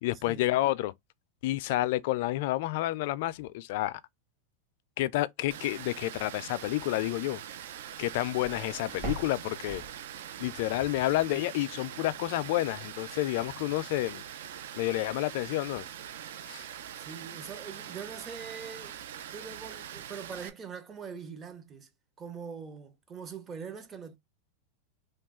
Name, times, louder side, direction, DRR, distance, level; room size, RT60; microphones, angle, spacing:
voice 1, 0.0-0.9 1.4-4.0 5.0-7.4 8.0-9.8 10.4-14.2 14.8-15.8 16.4-16.7, left 16 dB, 60° left, 0.3 m, -30 dB
Water, 5.5-20.5, right 10 dB, 75° right, 0.5 m, -43 dB
sound 1, 7.9-10.5, right 4 dB, 40° right, 1.7 m, -42 dB
voice 2, 17.0-19.0 19.3-21.9 22.2-24.2, right 6 dB, 20° right, 0.7 m, -43 dB
3.1 x 2.2 x 3.5 m
supercardioid pair, 140°, 0 cm